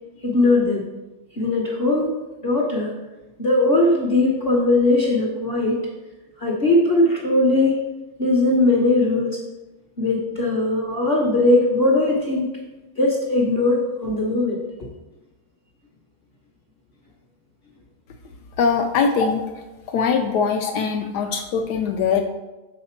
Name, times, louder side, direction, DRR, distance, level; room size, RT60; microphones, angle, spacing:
voice 1, 0.2-0.8 1.4-2.1 2.4-2.9 3.4-5.8 6.4-7.8 8.2-9.4 10.0-12.5 13.0-14.9, left 2 dB, 45° left, -2 dB, 0.9 m, -19 dB
voice 2, 18.6-19.4 19.9-22.2, left 6 dB, 80° left, 4 dB, 1.1 m, -21 dB
6.5 x 4.1 x 4.3 m, 1.1 s
omnidirectional pair, 1.8 m